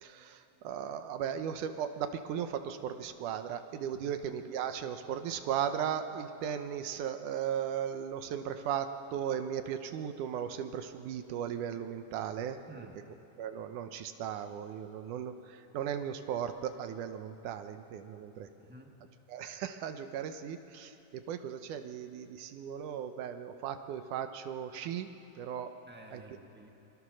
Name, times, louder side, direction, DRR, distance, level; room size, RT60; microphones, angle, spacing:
voice 1, 0.0-12.6 13.4-18.5 19.3-25.1 25.4-25.7 26.1-26.2, right 9 dB, 80° right, 8 dB, 2.4 m, -37 dB
voice 2, 12.7-13.0 18.6-18.9 25.9-26.7, right 1 dB, 10° right, 2 dB, 0.4 m, -52 dB
29.5 x 23.5 x 6.4 m, 2.9 s
omnidirectional pair, 3.6 m